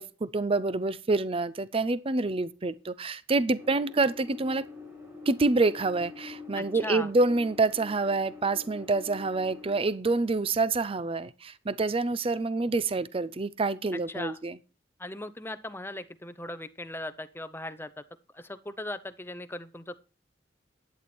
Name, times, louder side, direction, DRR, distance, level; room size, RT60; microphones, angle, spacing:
voice 1, 0.0-4.7 5.3-14.6, right 3 dB, 30° right, 0.6 m, -27 dB
sound 1, 3.6-9.8, left 3 dB, 15° right, 3.3 m, -45 dB
voice 2, 6.5-7.1 14.1-14.4 15.0-18.0 18.3-19.9, left 1 dB, 15° left, 0.8 m, -38 dB
11.5 x 8.8 x 4.4 m
head